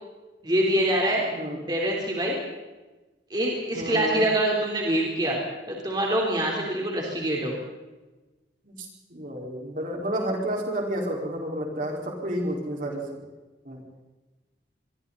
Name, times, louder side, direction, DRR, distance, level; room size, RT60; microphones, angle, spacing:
voice 1, 0.4-1.2 1.7-2.4 3.3-5.4 5.7-7.6, right 1 dB, 25° right, -2 dB, 4.0 m, -25 dB
voice 2, 1.3-1.6 3.7-4.2 8.6-13.1 13.6-13.8, right 1 dB, 45° right, 0 dB, 5.1 m, -30 dB
28.0 x 23.0 x 4.3 m, 1.1 s
head